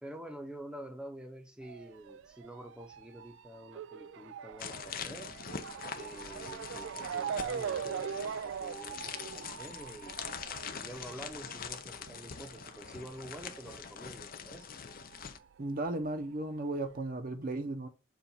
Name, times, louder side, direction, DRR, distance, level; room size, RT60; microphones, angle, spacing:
voice 1, 0.0-5.3 6.0-10.2 10.7-14.7, right 1 dB, 5° right, 0.8 m, -48 dB
Motor vehicle (road) / Siren, 1.6-14.6 14.9-16.1 16.7-16.8 17.1-17.2, right 7 dB, 65° right, 0.3 m, -42 dB
sound 1, 4.6-15.4, left 7 dB, 50° left, 0.7 m, -44 dB
voice 2, 15.6-17.9, right 2 dB, 45° right, 0.8 m, -35 dB
7.2 x 2.5 x 5.5 m
head